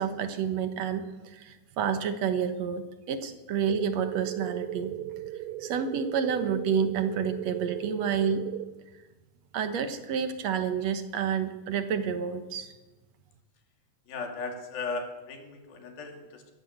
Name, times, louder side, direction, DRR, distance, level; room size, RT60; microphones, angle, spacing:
voice 1, 0.0-5.1 5.6-8.5 9.5-12.7, right 7 dB, 60° right, 9 dB, 2.0 m, -29 dB
sound 1, 3.7-8.7, right 12 dB, 85° right, 2.7 m, -37 dB
voice 2, 14.1-16.5, left 3 dB, 75° left, 3 dB, 4.4 m, -37 dB
22.5 x 14.5 x 8.0 m, 1.2 s
omnidirectional pair, 4.3 m